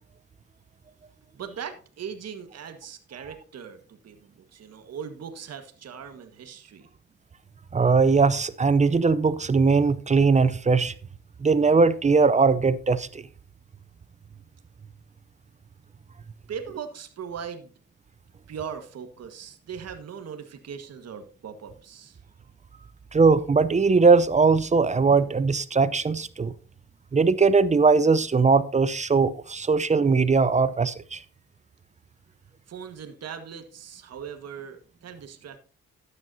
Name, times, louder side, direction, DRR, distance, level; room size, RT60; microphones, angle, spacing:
voice 1, 1.3-6.9 16.5-17.7 18.5-22.2 32.7-35.6, right 7 dB, 55° right, 1.6 m, -39 dB
voice 2, 7.7-10.9 11.4-13.2 23.1-26.5 27.1-31.2, right 4 dB, 25° right, 0.6 m, -20 dB
12.5 x 9.6 x 2.7 m
cardioid pair, 90°, 30 cm